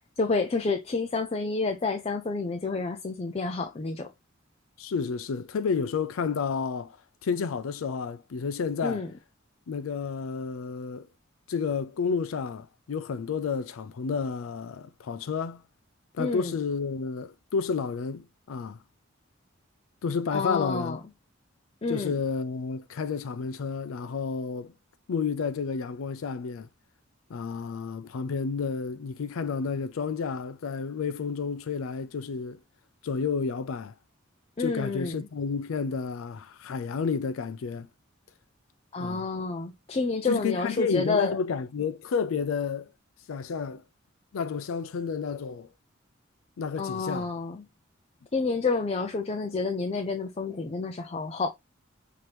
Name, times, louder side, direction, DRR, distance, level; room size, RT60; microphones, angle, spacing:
voice 1, 0.2-4.1 8.8-9.1 16.2-16.5 20.3-21.0 21.8-22.1 34.6-35.3 38.9-41.4 46.8-47.6 48.3-51.5, left 4 dB, 30° left, 0.4 m, -29 dB
voice 2, 4.8-7.0 7.2-9.1 9.7-11.1 11.5-15.6 16.1-18.8 20.0-21.0 21.9-24.7 25.1-26.7 27.3-32.6 33.0-33.9 34.6-37.9 39.0-39.3 40.3-42.9 43.3-43.8 44.3-45.7 46.6-47.3, left 5 dB, 85° left, 0.4 m, -31 dB
5.9 x 2.8 x 3.2 m
head